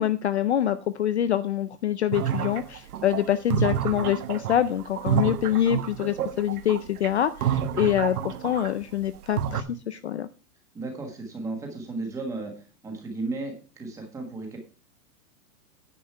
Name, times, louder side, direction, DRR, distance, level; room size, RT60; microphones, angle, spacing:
voice 1, 0.0-10.3, left 11 dB, 45° left, 12 dB, 0.5 m, -25 dB
sound 1, 2.1-8.8 9.1-9.6, right 9 dB, 65° right, 1.3 m, -29 dB
voice 2, 10.7-12.5 12.8-14.6, right 3 dB, 5° right, 2 dB, 1.5 m, -34 dB
10.5 x 7.5 x 4.6 m, 0.32 s
supercardioid pair, 180°, 48 cm